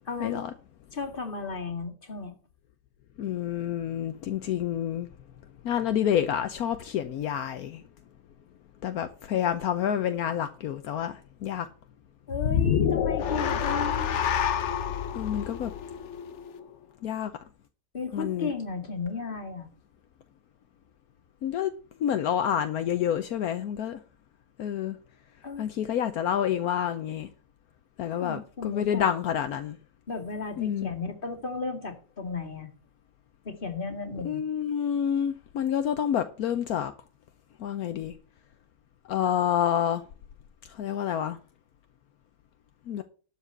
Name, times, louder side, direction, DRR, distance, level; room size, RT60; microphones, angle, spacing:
voice 1, 0.1-0.4 0.9-2.3 12.3-14.2 17.9-19.7 25.4-25.7 28.2-29.1 30.1-32.7 33.4-34.4, left 4 dB, 35° left, 2.2 m, -34 dB
voice 2, 3.2-5.1 5.6-7.8 8.8-11.7 15.1-15.7 17.0-17.3 18.1-18.5 21.4-21.7 22.0-24.0 24.6-25.0 25.6-27.3 28.0-29.8 30.6-30.9 34.2-36.9 37.6-38.1 39.1-40.0 40.7-41.4 42.9-43.0, left 9 dB, 75° left, 1.2 m, -28 dB
sound 1, 12.3-16.7, left 8 dB, 60° left, 0.9 m, -27 dB
12.0 x 5.0 x 7.8 m
omnidirectional pair, 1.6 m